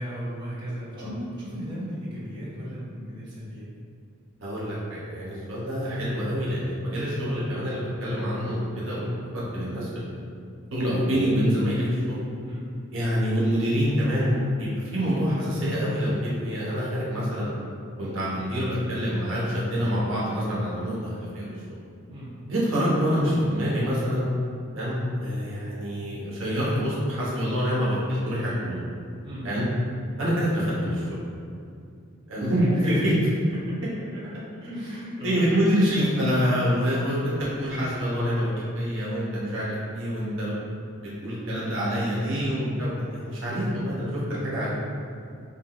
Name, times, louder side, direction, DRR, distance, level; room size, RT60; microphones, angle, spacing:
voice 1, 0.0-3.7 12.5-12.6 22.1-22.3 29.2-29.5 32.4-33.1 33.7-33.8 34.1-34.2 34.5-35.6, equal, 20° right, -11 dB, 1.5 m, -35 dB
voice 2, 4.4-9.9 10.7-12.2 12.9-17.5 18.0-21.6 22.5-24.3 24.7-28.8 29.4-29.6 30.2-31.2 32.3-33.0 35.2-40.5 41.0-44.7, equal, 75° right, -7 dB, 1.1 m, -26 dB
6.8 x 2.4 x 3.0 m, 2.5 s
head